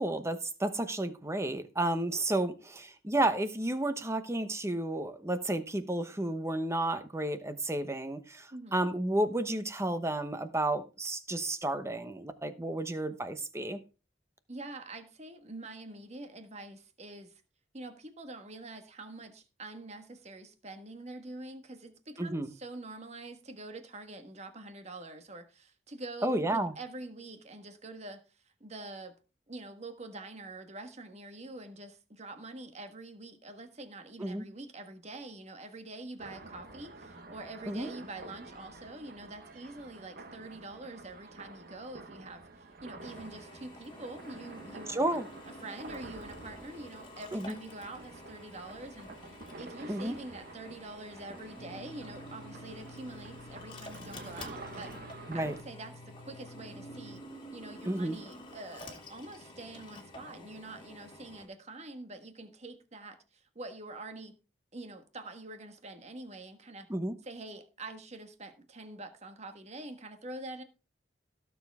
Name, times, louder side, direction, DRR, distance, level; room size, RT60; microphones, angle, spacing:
voice 1, 0.0-13.8 22.2-22.5 26.2-26.7 34.2-34.4 37.7-37.9 44.9-45.3 47.3-47.6 49.9-50.1 55.3-55.6 57.8-58.2 66.9-67.1, right 1 dB, 15° right, 1.0 m, -32 dB
voice 2, 14.5-17.4 17.7-29.1 29.5-45.1 45.5-54.9 55.3-57.2 57.5-64.4 64.7-66.9 67.2-70.6, right 2 dB, 35° right, 1.5 m, -45 dB
sound 1, 36.2-55.6, right 2 dB, 50° right, 1.3 m, -49 dB
Drill, 43.0-61.5, left 1 dB, 25° left, 2.6 m, -50 dB
sound 2, 51.6-57.2, left 2 dB, 60° left, 0.9 m, -52 dB
17.0 x 7.1 x 3.6 m
head